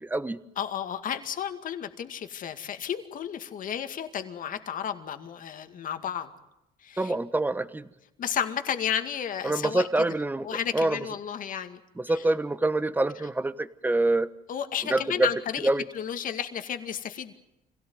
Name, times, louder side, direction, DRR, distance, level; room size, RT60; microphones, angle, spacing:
voice 1, 0.0-0.4 7.0-7.9 9.4-10.5 10.7-11.0 12.0-14.3 14.9-15.3 15.6-15.8, right 2 dB, 10° right, 13 dB, 1.2 m, -25 dB
voice 2, 0.6-6.3 6.8-7.1 8.2-9.9 10.4-11.8 12.1-12.2 14.5-17.3, left 9 dB, 55° left, 8 dB, 2.2 m, -32 dB
26.0 x 17.5 x 9.5 m, 0.89 s
cardioid pair, 110°, 17 cm